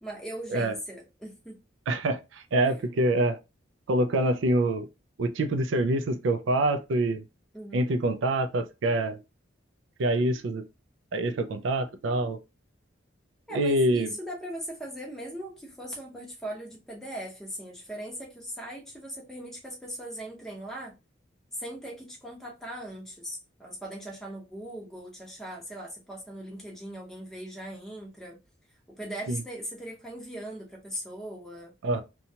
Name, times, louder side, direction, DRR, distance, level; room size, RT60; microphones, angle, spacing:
voice 1, 0.0-1.6 7.5-7.9 13.5-20.9 21.5-28.4 29.0-31.7, right 1 dB, ahead, 0.7 m, -39 dB
voice 2, 1.9-3.4 3.9-4.9 5.2-7.2 7.7-9.2 10.0-10.6 11.1-12.4 13.5-14.1 29.3-29.4 31.8-32.0, right 1 dB, 80° right, 0.4 m, -25 dB
2.8 x 2.2 x 2.7 m
head